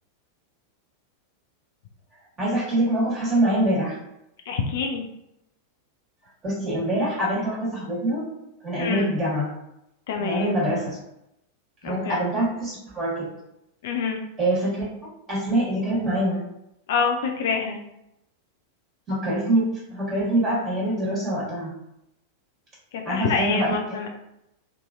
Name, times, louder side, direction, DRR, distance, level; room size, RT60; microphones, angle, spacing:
voice 1, 2.4-4.0 6.4-8.3 8.6-9.5 10.2-11.0 11.8-13.3 14.4-14.8 15.3-16.4 19.1-21.7 23.0-24.0, right 1 dB, 25° right, -6 dB, 1.3 m, -24 dB
voice 2, 4.5-5.1 8.8-9.1 10.1-10.6 11.8-12.2 13.8-14.2 16.9-17.8 22.9-24.1, left 5 dB, 55° left, 3 dB, 0.3 m, -26 dB
2.6 x 2.5 x 2.4 m, 0.83 s
figure-of-eight pair, 90°, 0 cm